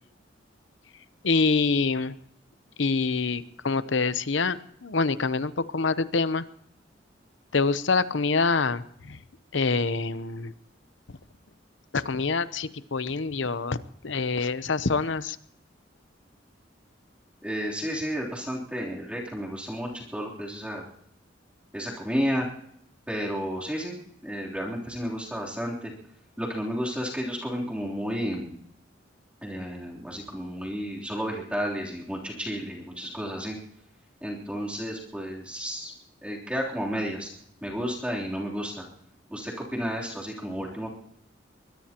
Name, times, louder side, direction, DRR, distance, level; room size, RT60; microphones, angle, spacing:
voice 1, 1.2-2.2 2.8-6.4 7.5-9.2 9.5-10.5 11.1-11.2 11.9-15.4, left 4 dB, 75° left, 14 dB, 0.8 m, -26 dB
voice 2, 17.4-20.9 21.7-22.5 23.1-24.0 24.2-25.9 26.4-28.5 29.4-33.6 34.2-35.9 36.2-37.3 37.6-38.9 39.3-41.0, equal, 5° right, -4 dB, 3.4 m, -32 dB
23.0 x 21.0 x 3.0 m, 0.68 s
head